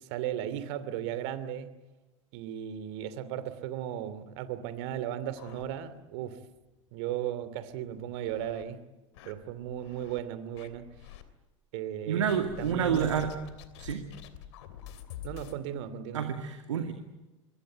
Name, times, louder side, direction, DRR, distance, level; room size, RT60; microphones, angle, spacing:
voice 1, 0.0-1.8 2.3-6.4 6.9-8.8 9.2-10.9 11.7-12.3 12.6-13.2 15.2-16.3, right 11 dB, 55° right, 13 dB, 2.7 m, -36 dB
sound 1, 4.7-6.2 6.6-6.7 7.0-7.1 7.7-8.6 9.1-10.2 10.5-11.2 12.3-15.6, left 10 dB, 60° left, 3.0 m, -47 dB
voice 2, 12.1-13.3 13.8-14.0 16.1-16.9, right 8 dB, 75° right, 7 dB, 2.3 m, -29 dB
26.0 x 22.5 x 9.2 m, 1.1 s
figure-of-eight pair, 85°, 16 cm